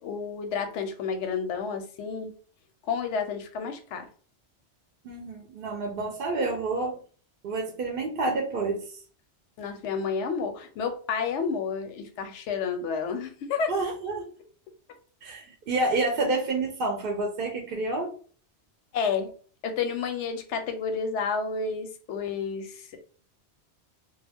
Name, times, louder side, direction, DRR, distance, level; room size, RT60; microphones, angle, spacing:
voice 1, 0.0-2.3 2.9-4.1 9.6-13.7 18.9-19.3 19.6-23.0, left 5 dB, 85° left, 7 dB, 0.9 m, -30 dB
voice 2, 5.0-7.0 7.4-9.0 13.7-14.3 15.2-18.1, right 2 dB, 60° right, 2 dB, 0.7 m, -29 dB
2.3 x 2.2 x 3.4 m, 0.42 s
omnidirectional pair, 1.2 m